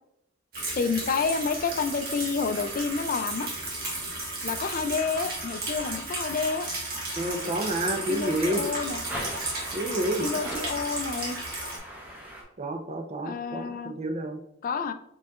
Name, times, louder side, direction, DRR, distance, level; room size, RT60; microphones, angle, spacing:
sound 1, 0.5-11.8, right 2 dB, 50° right, 1.4 m, -34 dB
voice 1, 0.8-3.5 4.4-6.7 8.1-9.0 10.2-11.4 13.2-13.9 14.6-14.9, left 5 dB, 45° left, 10 dB, 0.4 m, -29 dB
alarm sklep, 7.2-12.4, equal, 10° right, 1.0 m, -41 dB
voice 2, 7.2-8.6 9.7-10.5 12.6-14.4, right 1 dB, 35° right, 6 dB, 0.6 m, -29 dB
4.9 x 3.9 x 2.4 m, 0.78 s
head